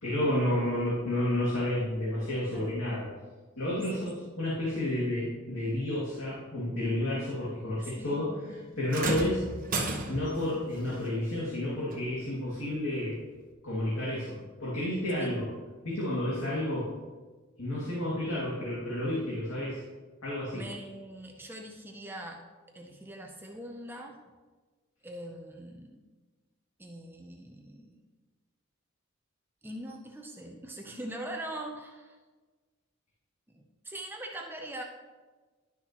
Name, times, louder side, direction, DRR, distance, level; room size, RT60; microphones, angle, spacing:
voice 1, 0.0-3.1 3.6-8.3 8.8-9.4 10.1-13.2 13.6-15.5 15.8-16.9 17.6-19.8 20.2-20.7, left 1 dB, 75° left, -8 dB, 2.2 m, -31 dB
voice 2, 7.8-8.8 15.2-15.3 20.5-22.4 22.7-24.2 25.0-26.0 26.8-28.0 29.6-32.2 33.5-34.8, right 1 dB, 10° right, 1 dB, 0.6 m, -42 dB
sound 1, 8.9-10.4 11.9-12.1 12.9-13.0, right 2 dB, 45° right, 1.1 m, -32 dB
11.5 x 6.1 x 3.0 m, 1.3 s
head